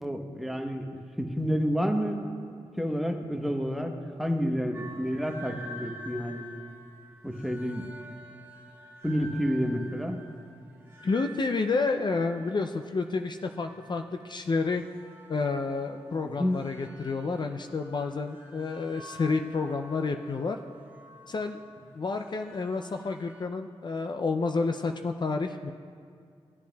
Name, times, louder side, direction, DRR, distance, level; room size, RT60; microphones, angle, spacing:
voice 1, 0.0-0.9 1.2-2.2 2.8-6.5 7.2-7.9 9.0-10.2 16.2-16.6, equal, ahead, 4 dB, 1.0 m, -29 dB
sound 1, 4.7-23.5, equal, 20° right, 1.8 m, -49 dB
voice 2, 11.0-14.8 15.3-20.6 21.3-21.6 21.9-25.7, left 4 dB, 45° left, 5 dB, 0.4 m, -30 dB
15.0 x 8.2 x 2.3 m, 2.3 s
cardioid pair, 50°, 11 cm